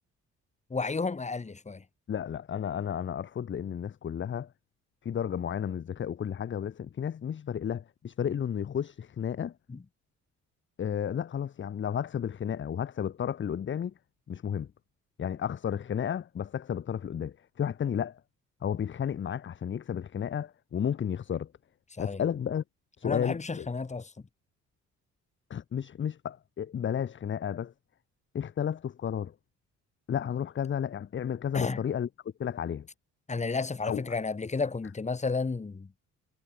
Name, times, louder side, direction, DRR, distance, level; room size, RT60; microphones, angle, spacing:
voice 1, 0.7-1.8 9.7-9.8 19.9-20.0 21.9-22.2 23.0-24.1 31.5-31.8 33.3-35.9, left 4 dB, 25° left, 1.9 m, -32 dB
voice 2, 2.1-4.5 5.0-9.5 10.8-13.9 14.3-14.7 15.2-18.2 18.6-21.5 22.0-22.6 23.0-23.7 25.5-27.7 28.3-29.3 30.1-32.1 32.4-32.9 33.9-34.0, left 8 dB, 40° left, 0.9 m, -32 dB
cardioid pair, 90°, 30 cm